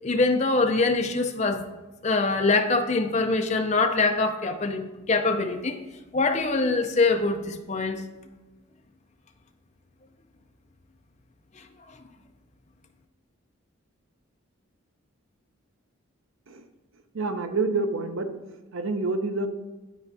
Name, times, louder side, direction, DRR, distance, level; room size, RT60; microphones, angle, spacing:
voice 1, 0.0-1.6 2.0-5.8 6.1-8.0 11.6-11.7, left 3 dB, 30° left, 5 dB, 0.5 m, -24 dB
voice 2, 17.1-18.3 18.7-19.5, right 3 dB, 70° right, 7 dB, 0.7 m, -27 dB
11.0 x 4.4 x 2.7 m, 1.1 s
head